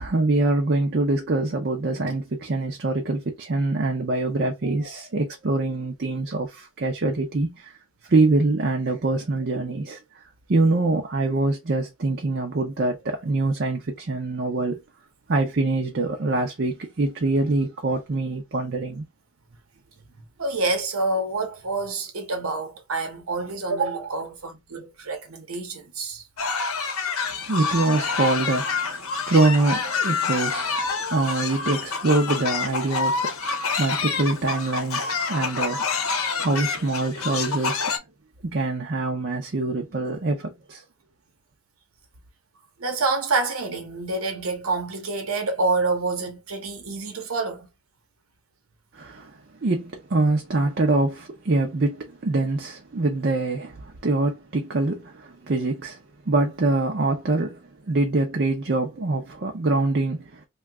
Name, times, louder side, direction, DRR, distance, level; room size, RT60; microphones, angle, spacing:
voice 1, 0.0-7.8 8.1-10.0 10.5-14.8 15.3-19.0 27.5-37.9 38.4-40.8 48.9-49.3 49.6-56.0 56.3-57.6 57.9-60.3, right 2 dB, 50° right, 0.5 m, -24 dB
voice 2, 20.4-26.2 42.8-47.7, right 3 dB, 90° right, 0.9 m, -27 dB
sound 1, 26.4-38.0, left 5 dB, 90° left, 0.8 m, -27 dB
2.8 x 2.3 x 3.4 m
head